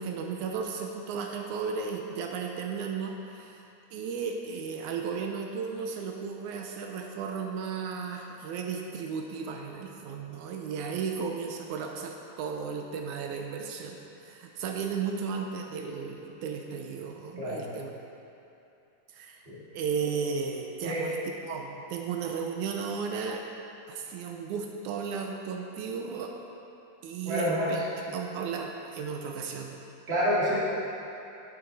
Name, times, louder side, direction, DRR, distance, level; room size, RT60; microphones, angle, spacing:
voice 1, 0.0-17.9 19.1-19.4 19.7-21.2 21.4-23.4 23.9-26.3 27.0-27.8 28.1-29.8, right 6 dB, 75° right, 2 dB, 1.9 m, -34 dB
voice 2, 27.3-27.8 30.1-30.5, equal, 25° right, -8 dB, 2.1 m, -28 dB
9.7 x 9.4 x 4.0 m, 2.8 s
omnidirectional pair, 3.7 m